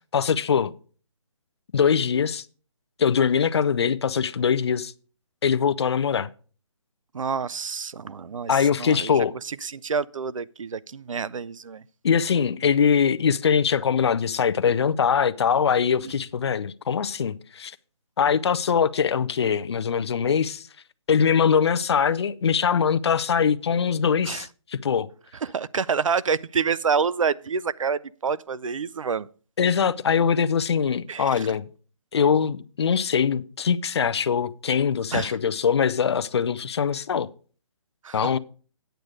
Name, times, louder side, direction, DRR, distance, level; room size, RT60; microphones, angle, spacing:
voice 1, 0.1-0.7 1.7-2.4 3.0-4.9 5.4-6.3 8.5-9.3 12.0-17.7 18.2-20.7 21.1-25.1 29.6-31.7 32.1-37.3 38.1-38.4, left 7 dB, 55° left, 0.5 m, -22 dB
voice 2, 7.1-9.1 9.4-11.8 24.2-24.5 25.4-29.3 31.1-31.5 35.1-35.4 38.0-38.2, right 6 dB, 85° right, 0.5 m, -28 dB
9.1 x 8.0 x 4.9 m
hypercardioid pair, 165°, 16 cm